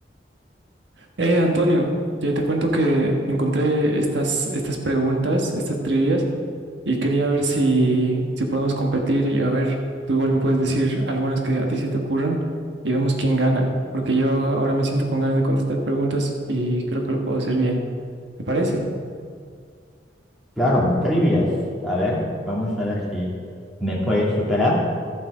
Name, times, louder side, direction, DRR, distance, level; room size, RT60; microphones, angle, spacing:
voice 1, 1.2-6.3 6.8-9.8 10.1-12.5 12.8-17.9 18.4-18.9, right 1 dB, 75° right, 2 dB, 1.4 m, -22 dB
voice 2, 20.6-21.5 21.8-22.2 22.5-23.3 23.8-24.8, left 1 dB, ahead, -6 dB, 2.4 m, -21 dB
13.5 x 7.5 x 4.9 m, 2.1 s
head